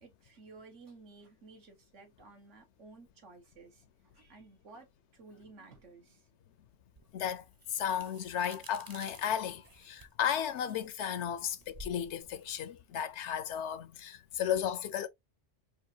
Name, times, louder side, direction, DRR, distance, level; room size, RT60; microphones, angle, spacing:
voice 1, 0.0-6.3 7.0-7.1 11.4-11.5, right 3 dB, 80° right, 1.6 m, -55 dB
sound 1, 7.0-13.7, right 1 dB, 30° right, 0.4 m, -54 dB
voice 2, 7.1-15.1, left 9 dB, 75° left, 0.9 m, -34 dB
4.8 x 2.5 x 2.7 m
omnidirectional pair, 1.2 m